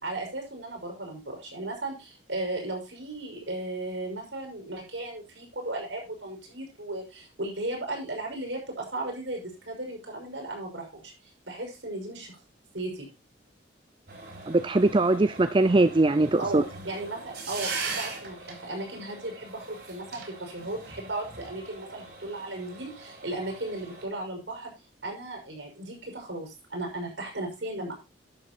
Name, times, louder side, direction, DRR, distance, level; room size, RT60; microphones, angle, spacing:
voice 1, 0.0-12.4 12.7-13.1 16.4-24.7 25.0-27.9, right 2 dB, 75° right, 5.7 m, -36 dB
sound 1, 14.1-24.0, right 4 dB, 55° right, 4.0 m, -40 dB
voice 2, 14.5-16.6, right 2 dB, 25° right, 0.5 m, -21 dB
11.5 x 7.2 x 4.3 m
head